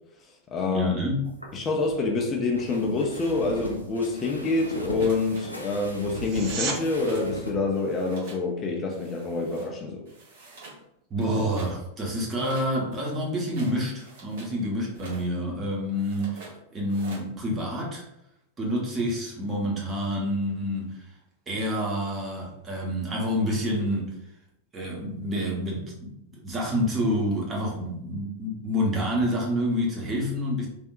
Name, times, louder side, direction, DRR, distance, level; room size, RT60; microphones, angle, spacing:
voice 1, 0.2-0.9 1.5-10.0, left 3 dB, 25° left, 1 dB, 0.5 m, -27 dB
voice 2, 0.7-1.2 11.1-18.0 18.6-21.1 21.5-24.2 24.7-30.7, equal, 20° right, -3 dB, 1.0 m, -28 dB
sound 1, 1.2-7.6, equal, 90° right, 0.5 m, -38 dB
sound 2, 4.9-5.4 5.7-6.7 7.0-7.4 7.6-8.4 8.9-9.7 10.1-10.8 11.2-11.8 12.3-14.5 14.9-15.3 15.9-16.5 16.9-17.3, right 3 dB, 55° right, 1.1 m, -47 dB
sound 3, 6.2-6.8 18.1-18.2, right 4 dB, 40° right, 0.5 m, -31 dB
3.4 x 2.6 x 2.4 m, 0.81 s
figure-of-eight pair, 90°, 0 cm